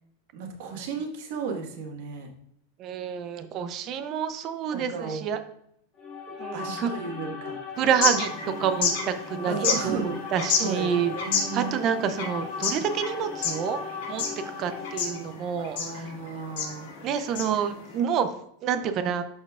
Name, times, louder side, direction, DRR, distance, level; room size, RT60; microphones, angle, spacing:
voice 1, 0.3-2.3 4.7-5.3 6.5-7.6 9.5-10.3 10.6-11.8 15.6-16.9, right 5 dB, 55° right, 2 dB, 1.6 m, -34 dB
voice 2, 2.8-5.4 6.3-6.9 7.8-11.1 11.5-13.8 14.1-16.0 17.0-18.3 18.6-19.2, right 8 dB, 30° right, 10 dB, 0.6 m, -28 dB
sound 1, 6.0-15.4, left 5 dB, 20° left, 1.5 m, -38 dB
sound 2, 7.8-18.0, left 6 dB, 70° left, 2.7 m, -31 dB
12.0 x 4.4 x 2.4 m, 0.74 s
supercardioid pair, 160°, 0 cm